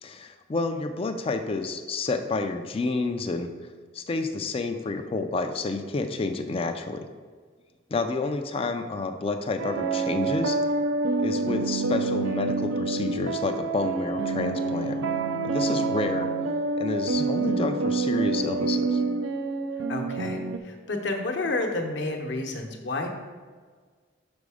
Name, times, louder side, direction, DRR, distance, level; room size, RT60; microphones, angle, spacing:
voice 1, 0.0-3.5 3.9-7.1 7.9-10.6 11.2-15.0 15.4-16.3 16.8-19.0, left 3 dB, 30° left, 6 dB, 0.4 m, -29 dB
sound 1, 9.6-20.6, right 3 dB, 90° right, 0.4 m, -27 dB
voice 2, 19.9-23.1, left 2 dB, 60° left, 3 dB, 0.9 m, -30 dB
5.8 x 5.2 x 4.8 m, 1.6 s
head